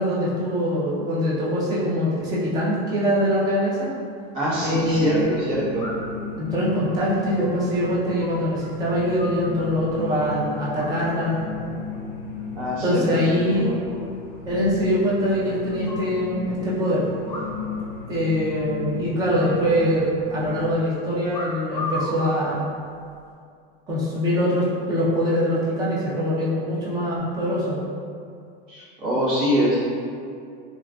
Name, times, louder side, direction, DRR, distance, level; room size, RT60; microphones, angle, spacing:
voice 1, 0.0-3.9 4.6-5.2 6.4-11.4 12.8-13.7 14.5-17.0 18.1-22.6 23.9-27.8, equal, 15° right, -7 dB, 0.4 m, -23 dB
sound 1, 4.0-4.1 5.8-6.2 6.6-8.7 8.9-10.0 10.8-11.3 11.6-12.0 12.3-12.9 13.2-13.3 13.5-13.6 13.9-14.0 14.3-14.4 15.1-16.1 17.2-17.8 18.1-18.2 18.5-18.8 19.3-20.2 21.3-22.2 22.9-23.3, left 1 dB, 20° left, 0.7 m, -37 dB
voice 2, 4.3-5.8 12.5-13.8 28.7-29.8, equal, 45° right, -9 dB, 1.1 m, -24 dB
sound 2, 4.4-20.7, left 4 dB, 50° left, 0.6 m, -35 dB
3.6 x 2.4 x 2.2 m, 2.3 s
supercardioid pair, 160°, 30 cm